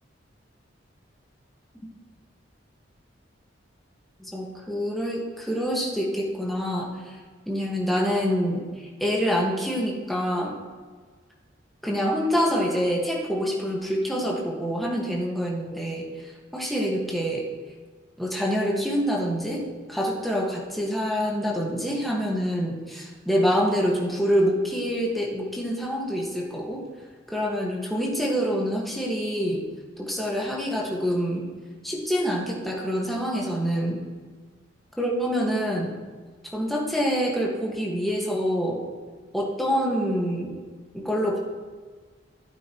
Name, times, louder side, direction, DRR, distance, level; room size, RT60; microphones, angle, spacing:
voice 1, 4.2-7.1 7.5-8.6 9.0-10.6 11.8-16.1 16.5-17.4 18.2-19.6 19.9-26.8 27.3-29.7 30.0-31.5 31.8-34.0 35.0-36.0 36.5-38.8 39.3-40.6 40.9-41.4, equal, ahead, -3 dB, 1.8 m, -26 dB
15.0 x 8.7 x 3.1 m, 1.5 s
head